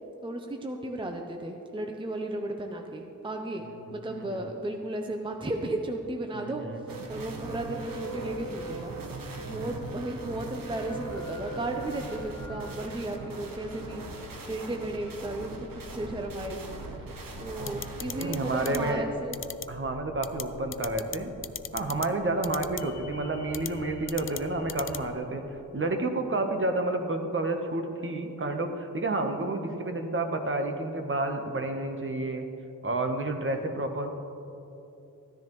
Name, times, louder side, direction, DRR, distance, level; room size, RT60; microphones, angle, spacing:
voice 1, 0.2-3.7 3.9-6.6 7.1-9.0 9.4-14.0 14.5-16.6 17.4-19.4, right 1 dB, 15° right, 3 dB, 0.6 m, -34 dB
voice 2, 3.8-4.5 6.3-6.9 18.2-19.1 19.7-21.3 21.7-32.5 32.8-34.1, right 2 dB, 40° right, 5 dB, 1.0 m, -30 dB
sound 1, 6.9-18.9, right 3 dB, 80° right, 1.0 m, -40 dB
sound 2, 8.3-25.1, left 2 dB, 60° left, 1.6 m, -48 dB
sound 3, 17.7-18.4 18.6-18.8 19.3-19.6 20.2-20.4 20.7-21.2 21.4-22.1 22.4-22.8 23.5-23.7 24.1-24.4 24.7-25.0, left 8 dB, 40° left, 0.4 m, -35 dB
14.0 x 10.5 x 3.1 m, 2.8 s
wide cardioid pair, 85°, 33 cm